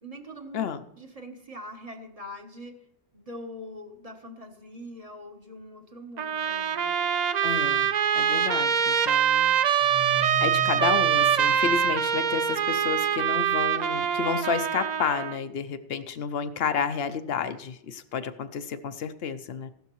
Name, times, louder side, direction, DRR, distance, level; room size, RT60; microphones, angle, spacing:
voice 1, 0.0-0.7 0.9-2.9 3.1-7.1, equal, 35° right, 4 dB, 1.2 m, -43 dB
Trumpet, 6.2-15.4, right 8 dB, 50° right, 0.6 m, -24 dB
voice 2, 7.4-9.5 10.4-19.7, left 6 dB, 70° left, 10 dB, 0.8 m, -31 dB
sound 1, 9.8-12.6, right 5 dB, 90° right, 2.8 m, -38 dB
15.5 x 12.5 x 3.0 m, 0.77 s
omnidirectional pair, 1.1 m